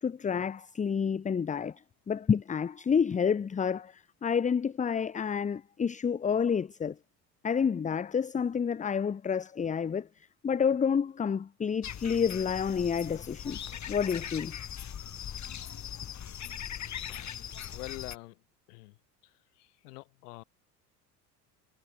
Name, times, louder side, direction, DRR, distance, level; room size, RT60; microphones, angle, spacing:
voice 1, 0.0-7.0 7.4-10.1 10.4-14.6, left 6 dB, 15° left, 0.7 m, -29 dB
sound 1, 11.8-18.2, left 9 dB, 35° left, 2.7 m, -40 dB
voice 2, 17.7-18.3 18.7-18.9 19.8-20.4, left 23 dB, 70° left, 2.0 m, -44 dB
hypercardioid pair, 70°, 49 cm